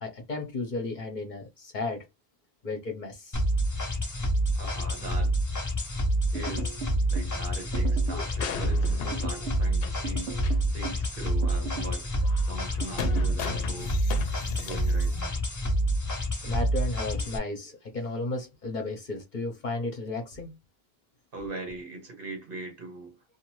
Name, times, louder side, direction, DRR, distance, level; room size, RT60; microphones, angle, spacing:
voice 1, 0.0-2.0 2.6-3.4 16.4-20.6, left 3 dB, 50° left, 0.9 m, -34 dB
sound 1, 3.3-17.4, right 1 dB, 20° left, 0.6 m, -28 dB
voice 2, 4.5-5.4 6.3-6.7 7.1-14.1 14.5-15.4 21.3-23.2, right 2 dB, 60° right, 1.4 m, -41 dB
sound 2, 6.3-7.3 7.7-8.3 9.1-9.7 10.0-11.1 11.4-12.0 12.8-13.3, right 5 dB, 90° right, 0.9 m, -38 dB
sound 3, 8.1-10.1 10.4-10.6 11.0-11.1 12.2-15.2, left 7 dB, 75° left, 0.8 m, -37 dB
2.6 x 2.6 x 3.0 m
omnidirectional pair, 1.0 m